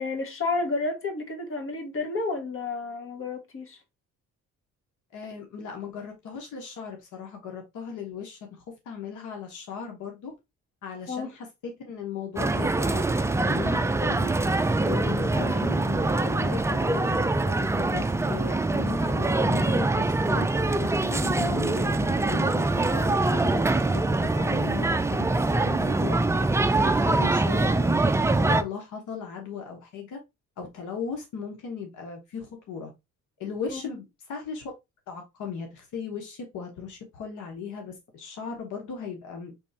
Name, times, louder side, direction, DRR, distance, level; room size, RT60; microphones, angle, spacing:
voice 1, 0.0-3.8 11.1-11.3 15.3-15.5 33.7-33.9, left 3 dB, 45° left, 1.6 m, -31 dB
voice 2, 5.1-10.3 10.8-14.3 14.8-25.4 25.6-26.2 26.8-30.2 30.6-32.9 33.4-34.7 35.1-39.5, left 6 dB, 80° left, 1.2 m, -37 dB
sound 1, 12.4-28.6, right 2 dB, 10° right, 0.4 m, -24 dB
5.4 x 3.2 x 2.8 m
cardioid pair, 90°, 30 cm